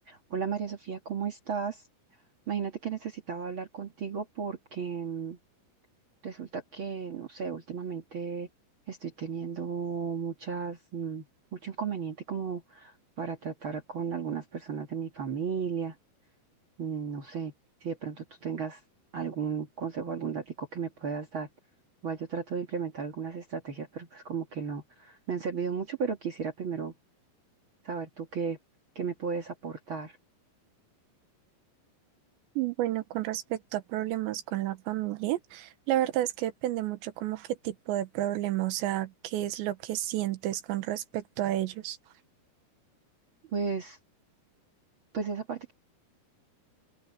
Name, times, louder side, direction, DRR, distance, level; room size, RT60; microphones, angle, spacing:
voice 1, 0.1-1.8 2.5-5.4 6.2-8.5 8.9-11.2 11.5-15.9 16.8-17.5 17.8-18.8 19.1-21.5 22.0-26.9 27.8-28.6 28.9-30.2 43.5-44.0 45.1-45.7, right 6 dB, 60° right, 1.3 m, -34 dB
voice 2, 32.6-42.0, right 14 dB, 85° right, 3.4 m, -31 dB
omnidirectional pair, 5.1 m